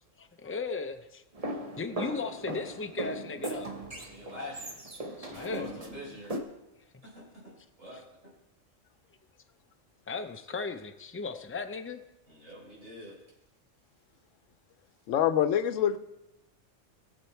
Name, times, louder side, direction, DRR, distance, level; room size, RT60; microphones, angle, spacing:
voice 1, 0.2-1.2 1.8-3.7 5.2-5.7 7.9-8.0 10.1-12.0, left 4 dB, 20° left, 6 dB, 0.4 m, -36 dB
sound 1, 1.3-6.4, right 1 dB, 30° right, 1.1 m, -38 dB
voice 2, 4.1-4.8 5.3-6.4 7.0-8.3 12.3-13.1, left 1 dB, 85° right, -4 dB, 4.9 m, -45 dB
voice 3, 15.1-16.0, left 9 dB, 85° left, 12 dB, 1.0 m, -25 dB
18.5 x 6.8 x 4.4 m, 0.94 s
omnidirectional pair, 1.3 m